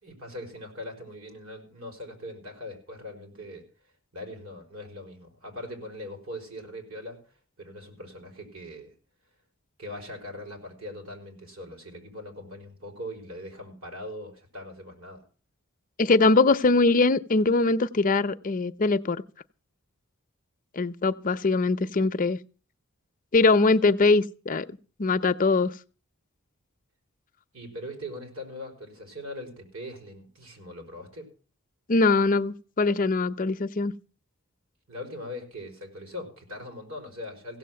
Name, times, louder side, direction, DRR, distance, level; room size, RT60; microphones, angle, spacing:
voice 1, 0.0-3.6 4.1-7.2 7.6-8.9 9.8-15.2 27.5-31.3 34.9-37.6, left 1 dB, 70° right, 5.0 m, -41 dB
voice 2, 16.0-19.2 20.7-22.4 23.3-24.7 25.0-25.7 31.9-33.9, left 3 dB, 40° left, 0.7 m, -22 dB
16.5 x 7.5 x 7.6 m
head